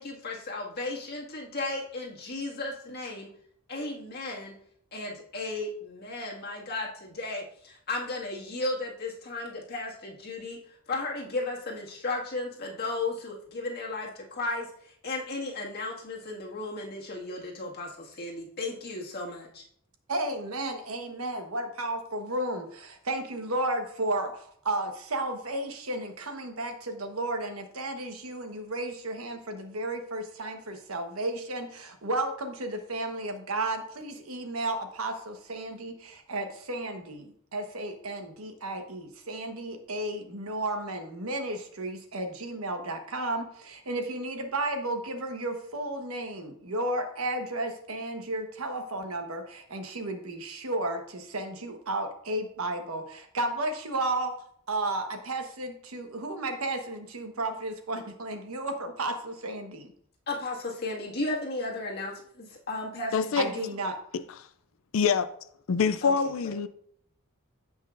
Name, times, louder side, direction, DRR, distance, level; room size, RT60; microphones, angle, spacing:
voice 1, 0.0-3.3 3.7-4.5 4.9-10.6 10.9-19.6 60.3-63.7 66.0-66.1 66.4-66.5, left 2 dB, 45° left, 1.8 m, -35 dB
voice 2, 20.1-54.4 54.7-59.9 63.4-64.0, right 2 dB, 85° right, 1.2 m, -33 dB
voice 3, 63.1-63.5 64.4-64.5 64.9-65.3 65.7-66.7, left 6 dB, 70° left, 0.4 m, -25 dB
15.5 x 5.5 x 2.5 m
head